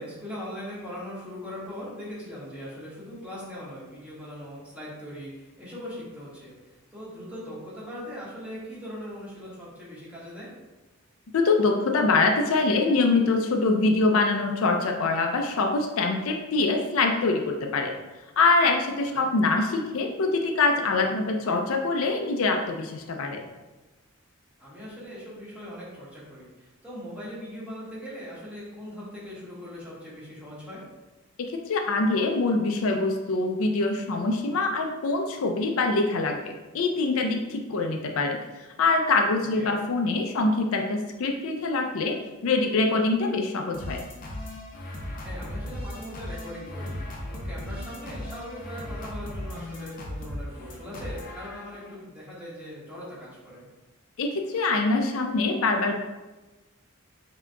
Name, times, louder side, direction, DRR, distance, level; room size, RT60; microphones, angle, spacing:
voice 1, 0.0-10.5 19.0-19.3 24.6-30.8 39.5-39.8 45.2-53.6, equal, 5° right, -8 dB, 1.4 m, -40 dB
voice 2, 11.3-17.9 18.4-23.4 31.5-38.4 38.8-44.0 54.2-55.9, left 3 dB, 85° left, 4 dB, 0.5 m, -24 dB
sound 1, 43.7-52.0, left 1 dB, 45° left, 0.7 m, -37 dB
5.7 x 2.8 x 2.3 m, 1.1 s
head